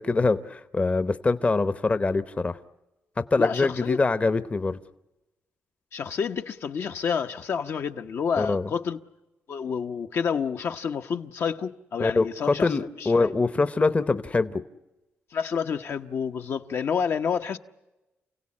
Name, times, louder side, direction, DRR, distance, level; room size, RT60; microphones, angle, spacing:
voice 1, 0.0-2.6 3.2-4.8 8.4-8.7 12.0-14.6, left 3 dB, 30° left, 0.8 m, -24 dB
voice 2, 3.4-4.0 5.9-9.0 9.5-13.3 15.3-17.6, left 6 dB, 65° left, 0.9 m, -29 dB
29.0 x 17.0 x 8.6 m
cardioid pair, 90°, 5 cm